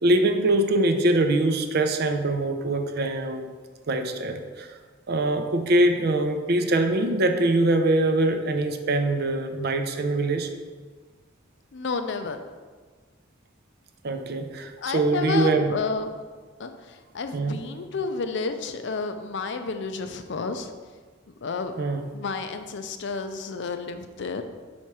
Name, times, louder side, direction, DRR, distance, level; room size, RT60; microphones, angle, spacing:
voice 1, 0.0-3.5 3.9-4.7 5.1-10.5 14.0-15.7 17.3-17.6 21.8-22.1, right 2 dB, 55° right, 7 dB, 0.5 m, -23 dB
voice 2, 11.7-12.4 14.8-16.2 16.6-20.7 21.4-21.7 22.1-24.4, left 4 dB, 65° left, 8 dB, 0.5 m, -31 dB
5.8 x 4.4 x 4.7 m, 1.5 s
head